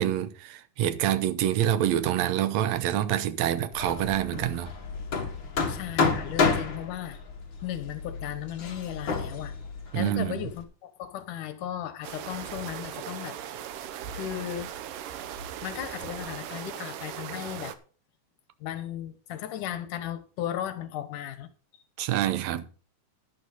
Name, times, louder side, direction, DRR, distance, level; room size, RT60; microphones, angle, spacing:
voice 1, 0.0-4.7 9.9-10.3 22.0-22.6, right 11 dB, 70° right, 2.0 m, -26 dB
Hammer, 3.7-10.6, left 4 dB, 40° left, 2.3 m, -30 dB
voice 2, 5.7-7.2 7.6-9.5 9.9-13.4 14.1-14.7 15.6-17.8 18.6-21.5, left 11 dB, 80° left, 2.6 m, -36 dB
sound 1, 12.0-17.8, right 9 dB, 90° right, 2.6 m, -38 dB
11.5 x 11.5 x 4.1 m
omnidirectional pair, 3.7 m